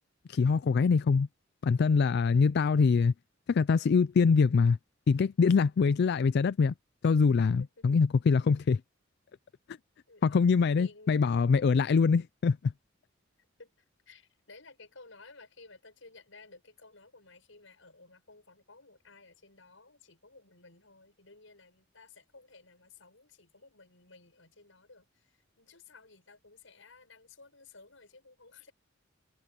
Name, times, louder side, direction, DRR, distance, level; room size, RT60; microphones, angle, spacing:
voice 1, 0.3-1.3 1.6-3.1 3.5-4.8 5.1-6.7 7.0-8.8 10.2-12.6, left 5 dB, 55° left, 0.4 m, -24 dB
voice 2, 7.6-7.9 10.1-11.4 13.6-28.7, left 3 dB, 70° left, 7.5 m, -56 dB
head